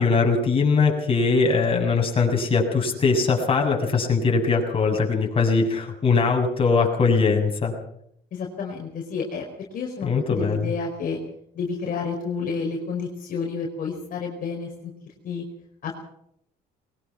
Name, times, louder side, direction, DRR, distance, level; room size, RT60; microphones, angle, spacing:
voice 1, 0.0-7.7 10.0-10.7, left 4 dB, 35° left, 1 dB, 7.0 m, -21 dB
voice 2, 8.3-9.4 9.7-11.2 11.5-14.9 15.2-15.4 15.8-16.0, left 5 dB, 55° left, 0 dB, 4.9 m, -30 dB
22.0 x 20.0 x 6.0 m, 0.72 s
cardioid pair, 110°, 17 cm